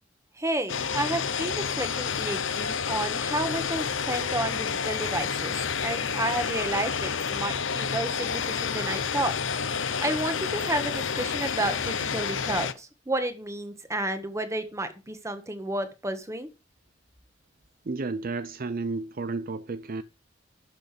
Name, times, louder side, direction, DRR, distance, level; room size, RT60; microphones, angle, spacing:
voice 1, 0.3-5.5 5.8-9.3 10.0-16.5, right 1 dB, 15° right, 1.5 m, -31 dB
sound 1, 0.7-12.7, left 6 dB, 85° left, 0.9 m, -29 dB
voice 2, 17.9-20.0, right 3 dB, 50° right, 0.5 m, -32 dB
12.0 x 6.4 x 5.0 m
head